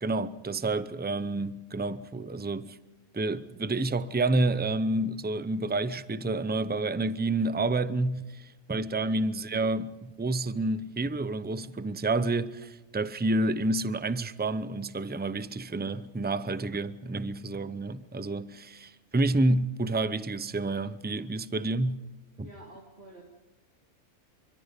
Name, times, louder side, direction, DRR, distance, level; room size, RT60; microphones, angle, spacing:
voice 1, 0.0-2.8 3.1-22.0 22.4-22.5, right 2 dB, 10° right, 0.5 m, -29 dB
voice 2, 22.4-23.2, right 2 dB, 45° right, 3.5 m, -50 dB
26.0 x 24.0 x 5.3 m
omnidirectional pair, 1.5 m